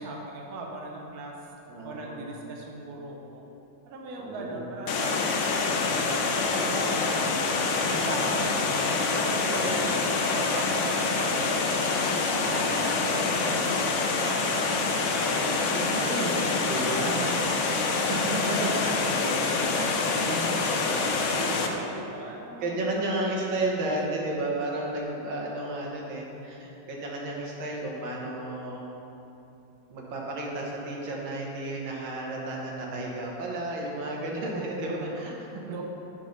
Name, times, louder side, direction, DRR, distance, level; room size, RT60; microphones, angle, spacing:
voice 1, 0.0-1.3 1.8-3.4 3.9-5.9 6.4-7.3 7.9-8.7 9.1-11.8 12.3-17.4 18.1-20.4 20.9-24.0 34.3-34.9 35.6-35.8, right 2 dB, 55° right, -1 dB, 1.3 m, -38 dB
voice 2, 1.7-2.4 4.2-4.6 7.9-8.3 9.4-9.8 12.3-12.8 15.6-16.4 16.7-17.2 18.0-19.0 20.1-20.6 22.6-28.9 29.9-35.6, right 2 dB, 90° right, -2 dB, 2.0 m, -33 dB
Water, 4.9-21.7, left 4 dB, 85° left, 0.6 m, -26 dB
8.4 x 4.1 x 6.4 m, 3.0 s
omnidirectional pair, 2.1 m